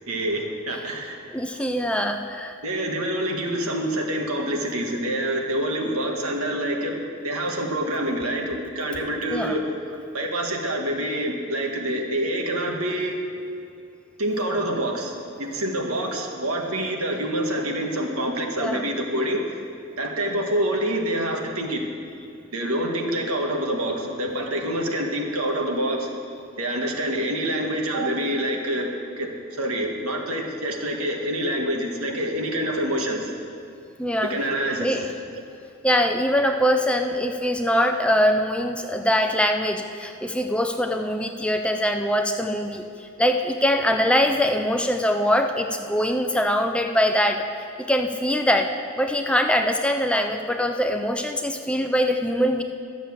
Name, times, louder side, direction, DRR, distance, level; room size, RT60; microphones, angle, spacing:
voice 1, 0.1-1.2 2.6-13.2 14.2-19.4 20.0-21.8 22.5-26.1 26.6-28.9 29.2-33.3 34.2-35.1 36.4-36.5, right 1 dB, 85° right, 2 dB, 1.6 m, -26 dB
voice 2, 1.3-2.6 9.3-9.5 18.6-18.8 34.0-34.3 34.8-35.1 35.8-47.5 47.9-48.7 49.0-52.6, equal, 5° left, 5 dB, 0.4 m, -23 dB
12.5 x 7.2 x 7.1 m, 2.6 s
head